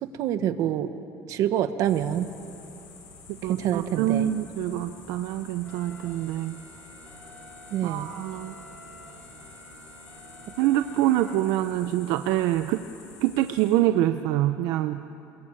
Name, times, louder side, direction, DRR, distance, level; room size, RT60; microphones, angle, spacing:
voice 1, 0.0-0.9 1.3-2.3 3.4-4.3 7.7-8.1, right 11 dB, 60° right, 10 dB, 1.3 m, -26 dB
sound 1, 1.8-13.7, left 5 dB, 90° left, 7.6 m, -49 dB
voice 2, 3.4-6.6 7.8-8.5 10.6-12.8 13.2-15.0, right 13 dB, 80° right, 8 dB, 0.8 m, -25 dB
sound 2, 5.6-11.8, equal, 20° left, 6.7 m, -49 dB
27.5 x 21.5 x 9.0 m, 2.8 s
cardioid pair, 140°, 6 cm